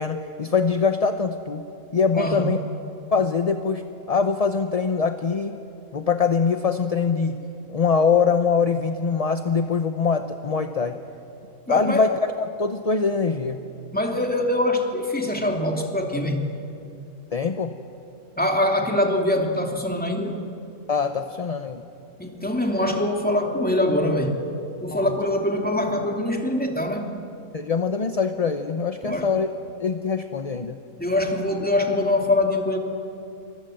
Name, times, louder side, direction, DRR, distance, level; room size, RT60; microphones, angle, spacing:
voice 1, 0.0-1.6 1.9-2.6 3.1-3.8 4.1-5.6 5.9-7.4 7.7-11.0 11.7-12.1 12.4-13.6 17.3-17.7 20.9-21.8 24.9-25.1 27.5-29.5 29.8-30.8, left 5 dB, 35° left, 7 dB, 0.7 m, -23 dB
voice 2, 2.1-2.5 11.7-12.0 13.9-16.5 18.4-20.4 22.2-24.4 24.8-27.2 29.0-29.3 31.0-32.8, left 1 dB, 5° left, 2 dB, 2.6 m, -23 dB
27.5 x 25.0 x 7.7 m, 2.7 s
omnidirectional pair, 1.6 m